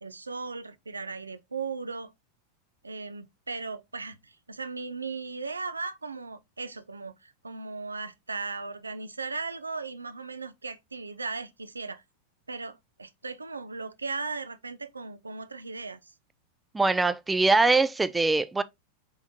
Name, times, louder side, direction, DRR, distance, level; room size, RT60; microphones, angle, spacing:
voice 1, 0.0-2.1 2.8-12.0 12.5-16.1, right 4 dB, 80° right, 0.4 m, -37 dB
voice 2, 16.7-18.6, right 3 dB, 10° right, 0.3 m, -22 dB
3.6 x 3.4 x 2.7 m
figure-of-eight pair, 90°, 0 cm